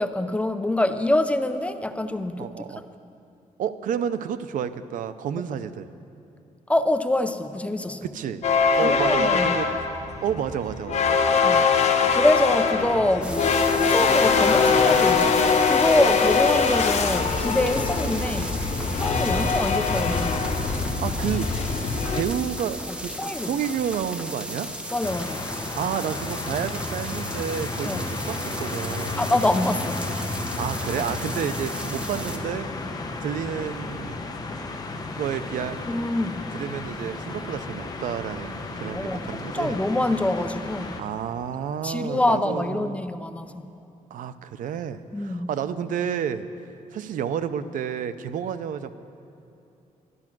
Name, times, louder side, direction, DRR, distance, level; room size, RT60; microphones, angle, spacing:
voice 1, 0.0-2.9 6.7-8.1 8.8-9.7 11.4-15.4 15.7-18.6 18.9-20.4 23.2-23.5 24.9-25.4 27.8-28.0 29.2-30.1 35.9-36.5 38.9-41.0 41.8-43.6 45.1-45.5, left 1 dB, 10° left, 9 dB, 0.5 m, -25 dB
voice 2, 2.4-2.8 3.6-5.9 8.0-8.4 8.8-9.7 10.2-11.4 20.7-21.5 22.1-23.1 23.4-24.7 25.8-29.2 30.6-32.7 33.2-34.2 35.2-35.8 36.5-39.8 41.0-43.0 44.1-46.5 46.9-48.9, right 8 dB, 80° right, 12 dB, 0.5 m, -30 dB
sound 1, 8.4-22.2, left 5 dB, 55° left, 0.9 m, -22 dB
sound 2, 13.2-32.4, equal, 10° right, 1.1 m, -35 dB
sound 3, 25.0-41.0, left 2 dB, 30° left, 0.9 m, -33 dB
12.5 x 12.0 x 6.0 m, 2.8 s
cardioid pair, 135°, 14 cm